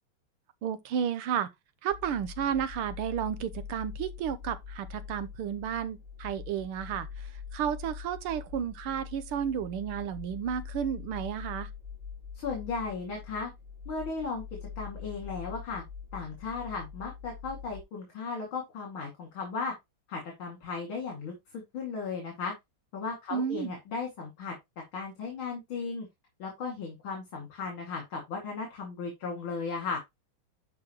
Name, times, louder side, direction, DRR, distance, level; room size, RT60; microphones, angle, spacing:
voice 1, 0.6-1.5 1.8-11.7 23.3-23.7, right 8 dB, 85° right, 1.7 m, -32 dB
sound 1, 1.9-17.8, left 6 dB, 20° right, 2.4 m, -43 dB
voice 2, 12.3-13.5 13.9-14.4 14.8-15.8 16.1-19.7 20.1-22.5 22.9-24.5 24.9-26.1 26.4-30.0, left 4 dB, 70° left, 3.2 m, -36 dB
11.5 x 4.8 x 3.0 m
omnidirectional pair, 2.4 m